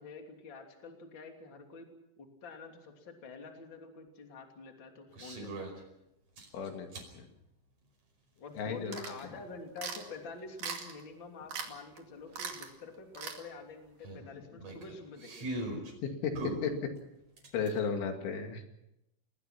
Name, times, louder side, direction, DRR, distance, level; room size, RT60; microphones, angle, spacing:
voice 1, 0.0-1.9 2.2-5.7 8.4-15.5, left 4 dB, 30° left, 3 dB, 3.0 m, -47 dB
sound 1, 5.1-5.8 6.4-7.1 8.6-8.7 11.4-11.5 11.7-11.8 12.3-12.4 14.0-15.9 16.3-17.8, right 1 dB, 35° right, 5.8 m, -40 dB
voice 2, 6.5-7.3 8.5-9.3 16.0-16.7 17.5-18.6, left 6 dB, 80° left, 4 dB, 4.7 m, -35 dB
sound 2, 8.9-9.3 9.8-10.1 10.6-11.0 11.5-11.7 12.0-12.1 12.3-12.7 13.1-13.4, right 6 dB, 50° right, 3.5 m, -39 dB
30.0 x 20.0 x 5.9 m, 0.84 s
omnidirectional pair, 5.3 m